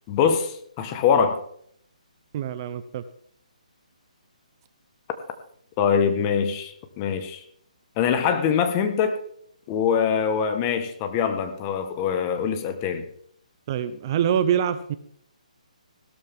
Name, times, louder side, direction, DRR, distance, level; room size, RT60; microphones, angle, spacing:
voice 1, 0.1-1.4 5.8-7.4 8.0-9.2 9.7-13.0, left 7 dB, 20° left, 8 dB, 1.4 m, -23 dB
voice 2, 2.3-3.0 13.7-15.0, right 9 dB, 30° right, 12 dB, 0.8 m, -25 dB
16.5 x 12.5 x 3.7 m, 0.66 s
hypercardioid pair, 160°, 4 cm